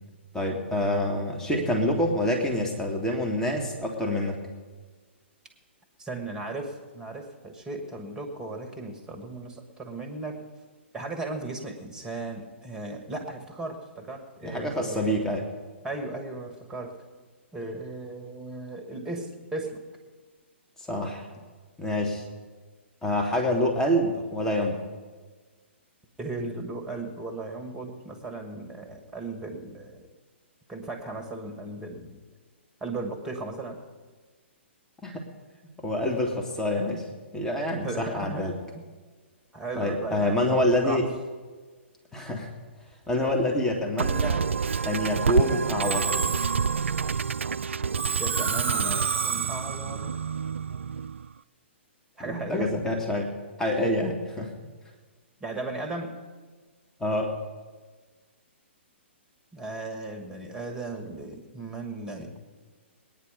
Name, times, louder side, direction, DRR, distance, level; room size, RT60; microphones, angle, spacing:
voice 1, 0.3-4.4 14.4-15.5 20.9-21.3 21.8-22.2 23.0-24.8 35.0-35.2 35.8-37.0 37.3-38.5 39.8-41.1 42.1-42.5 43.1-44.4 44.8-46.1 52.2-53.3 53.6-54.5 57.0-57.3, left 1 dB, 10° left, 2 dB, 2.2 m, -26 dB
voice 2, 6.0-10.4 10.9-15.3 15.8-17.0 17.5-19.9 26.2-30.1 30.7-32.2 32.8-33.9 37.8-38.5 38.7-38.9 39.5-41.1 48.2-50.1 52.2-52.7 55.4-56.2 59.5-62.4, right 2 dB, 10° right, 3 dB, 2.1 m, -36 dB
Musical instrument, 44.0-51.3, right 6 dB, 80° right, 0.4 m, -27 dB
20.0 x 9.7 x 5.3 m, 1.4 s
figure-of-eight pair, 125°, 7 cm